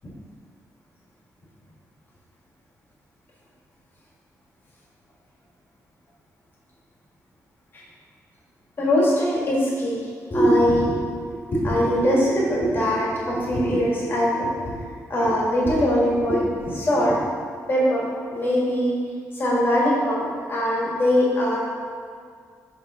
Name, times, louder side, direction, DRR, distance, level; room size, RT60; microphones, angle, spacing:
voice 1, 8.8-11.0 11.2-17.2 17.7-18.0 18.3-19.0 19.3-21.6, equal, 35° left, -5 dB, 1.6 m, -22 dB
5.6 x 3.6 x 5.4 m, 2.1 s
wide cardioid pair, 150°, 6 cm